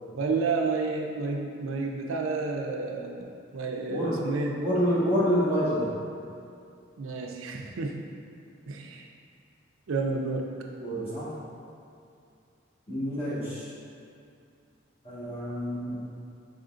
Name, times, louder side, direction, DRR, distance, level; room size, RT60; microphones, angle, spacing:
voice 1, 0.1-4.6 7.0-8.1 8.7-9.1 9.9-10.5, right 4 dB, 80° right, 2 dB, 0.4 m, -30 dB
voice 2, 3.9-4.2 4.6-5.9 10.8-11.3 12.9-13.7 15.0-16.1, equal, 30° left, -11 dB, 1.3 m, -27 dB
4.9 x 3.8 x 2.4 m, 2.5 s
head